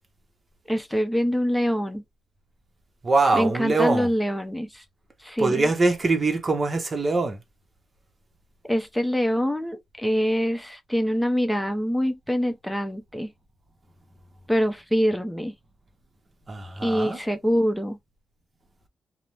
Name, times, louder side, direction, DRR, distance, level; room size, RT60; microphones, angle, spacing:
voice 1, 0.7-2.0 3.3-4.8 5.2-5.7 8.7-13.3 14.5-15.5 16.8-18.0, equal, 5° left, 0.7 m, -25 dB
voice 2, 3.0-4.1 5.4-7.4 16.5-17.2, right 3 dB, 40° right, 0.9 m, -23 dB
2.6 x 2.1 x 3.0 m
cardioid pair, 70°, 0 cm